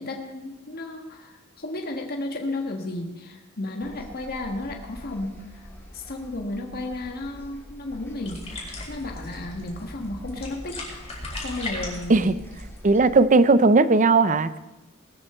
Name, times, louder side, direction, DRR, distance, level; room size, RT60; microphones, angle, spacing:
voice 1, 0.0-5.7 5.9-11.0 11.4-12.3, left 2 dB, 45° left, 2 dB, 1.6 m, -33 dB
sound 1, 3.8-13.2, equal, 10° left, 2.2 m, -46 dB
sound 2, 8.2-13.2, left 2 dB, 25° left, 4.8 m, -37 dB
voice 2, 12.8-14.6, right 3 dB, 35° right, 14 dB, 0.6 m, -17 dB
19.5 x 13.5 x 4.4 m, 1.1 s
head